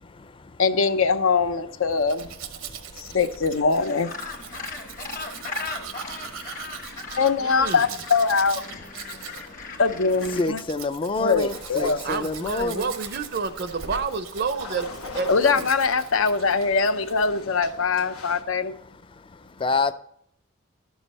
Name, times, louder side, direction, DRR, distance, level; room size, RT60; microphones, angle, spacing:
voice 1, 0.6-2.3 3.0-4.1 7.2-8.6 9.8-10.6 11.2-12.0 15.3-18.7, left 4 dB, 70° left, 0.6 m, -22 dB
Domestic sounds home sounds, 1.9-17.3 17.6-18.1, right 7 dB, 85° right, 0.9 m, -41 dB
Gull seagull, 3.7-10.5, left 4 dB, 40° left, 1.1 m, -37 dB
voice 2, 7.4-7.8 11.8-14.9 15.1-15.7, right 5 dB, 50° right, 0.5 m, -29 dB
voice 3, 10.4-12.9 19.6-19.9, left 3 dB, 25° left, 0.4 m, -27 dB
sound 1, 11.4-18.4, left 3 dB, 90° left, 1.1 m, -43 dB
11.5 x 7.2 x 4.1 m
head